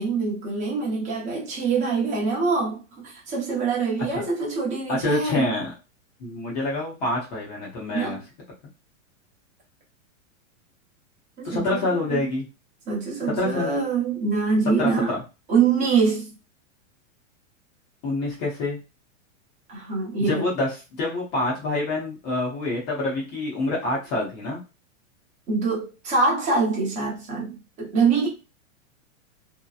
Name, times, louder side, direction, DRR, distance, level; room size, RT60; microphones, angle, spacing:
voice 1, 0.0-5.6 7.9-8.2 11.4-12.3 12.9-15.1 15.5-16.3 19.7-20.4 25.5-28.3, right 4 dB, 20° right, 0.8 m, -24 dB
voice 2, 4.9-5.7 6.2-8.2 11.4-12.4 13.4-13.8 14.8-15.2 18.0-18.8 20.3-20.7 21.0-24.6, left 2 dB, 30° left, 0.7 m, -26 dB
2.8 x 2.1 x 2.3 m
supercardioid pair, 160°, 38 cm